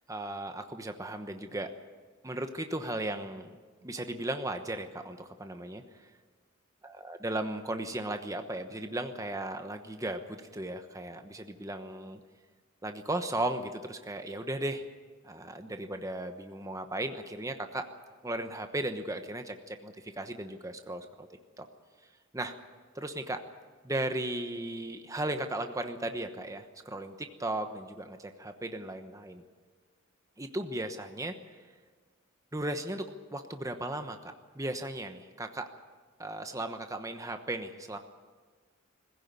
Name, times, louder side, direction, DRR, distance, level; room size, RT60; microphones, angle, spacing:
voice 1, 0.1-1.7 2.2-3.5 3.8-6.1 6.8-12.2 12.8-14.8 15.2-17.9 18.2-21.3 21.6-21.7 22.3-22.5 22.9-23.4 23.8-29.4 30.4-31.3 32.5-35.7 36.2-38.0, right 1 dB, 15° right, 7 dB, 1.1 m, -36 dB
21.0 x 15.5 x 9.6 m, 1.5 s
head